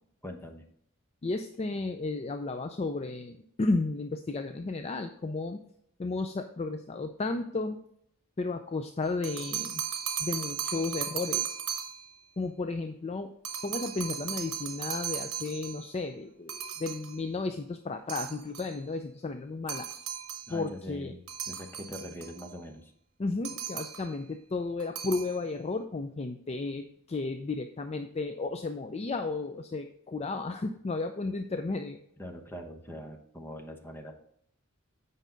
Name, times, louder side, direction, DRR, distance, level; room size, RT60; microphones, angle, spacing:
voice 1, 0.2-0.6 20.5-22.9 32.2-34.1, left 1 dB, 10° left, 3 dB, 1.0 m, -43 dB
voice 2, 1.2-5.6 6.0-7.8 8.4-9.8 10.2-11.6 12.4-13.3 13.6-19.9 20.5-21.1 23.2-32.0, left 3 dB, 30° left, 7 dB, 0.4 m, -33 dB
sound 1, 9.1-12.2 13.4-15.9 16.5-17.2 18.1-18.8 19.7-20.5 21.3-22.5 23.4-24.2 24.8-25.4, right 9 dB, 90° right, 0.9 m, -36 dB
8.3 x 5.5 x 3.9 m, 0.71 s
head